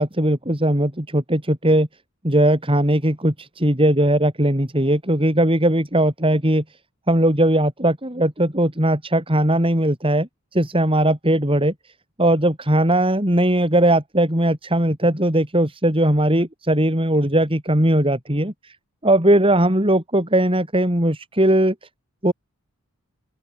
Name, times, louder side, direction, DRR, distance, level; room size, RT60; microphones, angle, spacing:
voice 1, 0.0-1.9 2.2-6.6 7.1-11.7 12.2-18.5 19.0-21.7 22.2-22.3, right 1 dB, 25° right, 4.7 m, -19 dB
open air
head